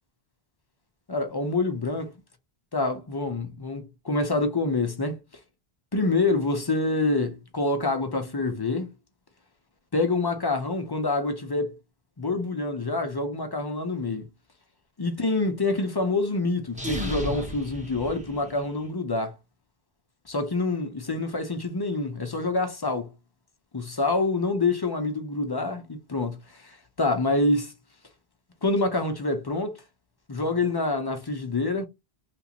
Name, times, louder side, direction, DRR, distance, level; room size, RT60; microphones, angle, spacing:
voice 1, 1.1-2.1 2.7-5.2 5.9-8.9 9.9-11.8 12.2-14.3 15.0-19.4 20.3-23.1 23.7-27.7 28.6-29.8 30.3-31.9, left 2 dB, 30° left, 0.4 m, -26 dB
sound 1, 16.7-18.8, equal, 10° right, 0.7 m, -34 dB
2.9 x 2.5 x 2.8 m
omnidirectional pair, 1.0 m